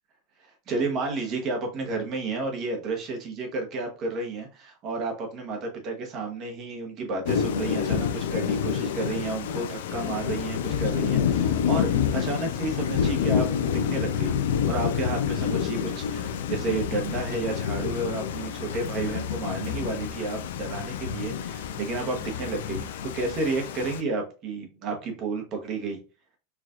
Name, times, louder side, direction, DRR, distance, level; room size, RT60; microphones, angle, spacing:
voice 1, 0.4-13.5 13.9-14.4 14.6-26.0, right 3 dB, 35° right, 2 dB, 0.9 m, -31 dB
Thunder / Rain, 7.3-24.0, left 8 dB, 90° left, 0.4 m, -28 dB
4.5 x 2.4 x 2.4 m, 0.33 s
supercardioid pair, 160°, 0 cm